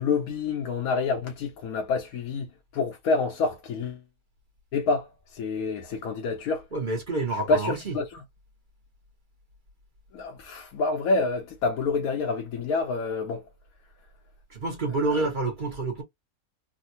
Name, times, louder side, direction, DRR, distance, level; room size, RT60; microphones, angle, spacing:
voice 1, 0.0-2.5 2.7-4.0 4.7-6.6 7.5-8.2 10.1-13.5 15.1-15.3, left 4 dB, 75° left, 1.1 m, -27 dB
voice 2, 6.7-8.0 14.5-16.0, right 2 dB, 40° right, 1.0 m, -28 dB
3.5 x 2.1 x 2.7 m
omnidirectional pair, 1.6 m